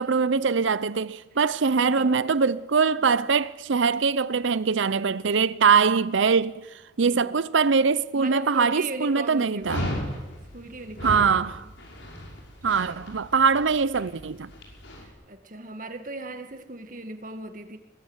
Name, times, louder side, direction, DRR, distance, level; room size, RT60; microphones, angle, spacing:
voice 1, 0.0-6.7 7.0-9.8 11.0-11.6 12.6-14.5, right 5 dB, 80° right, 0.6 m, -22 dB
voice 2, 1.6-2.2 3.0-3.3 7.0-7.4 8.1-10.0 10.5-11.7 15.0-17.8, right 2 dB, 45° right, 1.9 m, -38 dB
Dog, 9.6-15.0, left 1 dB, 75° left, 5.7 m, -35 dB
22.0 x 19.5 x 8.1 m
head